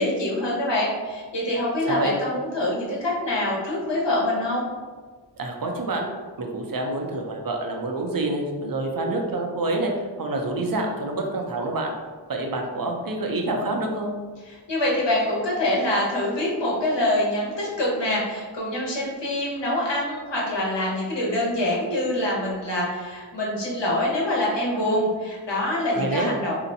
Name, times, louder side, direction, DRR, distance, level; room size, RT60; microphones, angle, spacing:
voice 1, 0.0-4.7 14.7-26.5, left 1 dB, 65° left, -4 dB, 1.1 m, -25 dB
voice 2, 1.9-2.2 5.4-6.1 6.4-11.9 12.3-14.1 25.9-26.3, right 2 dB, 45° right, 2 dB, 0.6 m, -27 dB
2.8 x 2.2 x 3.9 m, 1.4 s
wide cardioid pair, 55°, 47 cm